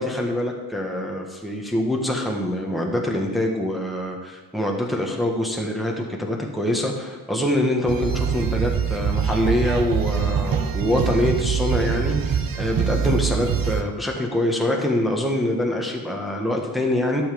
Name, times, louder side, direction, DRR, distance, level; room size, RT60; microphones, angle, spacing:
voice 1, 0.0-17.2, left 1 dB, ahead, 0 dB, 1.5 m, -24 dB
sound 1, 7.9-13.8, right 8 dB, 55° right, 0.9 m, -24 dB
11.5 x 7.5 x 5.2 m, 1.4 s
wide cardioid pair, 105°, 40 cm